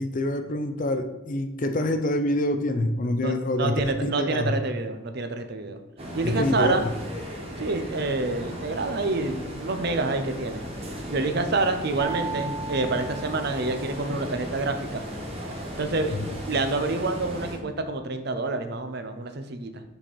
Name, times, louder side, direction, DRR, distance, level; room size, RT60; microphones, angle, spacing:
voice 1, 0.0-3.7 4.0-4.5 6.2-6.9 16.1-16.3, left 1 dB, 40° left, 8 dB, 0.5 m, -26 dB
voice 2, 3.2-5.8 6.1-6.8 7.6-10.6 11.1-15.0 15.5-19.8, right 3 dB, 50° right, 8 dB, 0.6 m, -28 dB
sound 1, 6.0-17.6, equal, 30° right, 1.2 m, -36 dB
sound 2, 12.0-14.1, right 5 dB, 20° left, 1.4 m, -36 dB
5.8 x 4.2 x 5.2 m, 1.1 s
head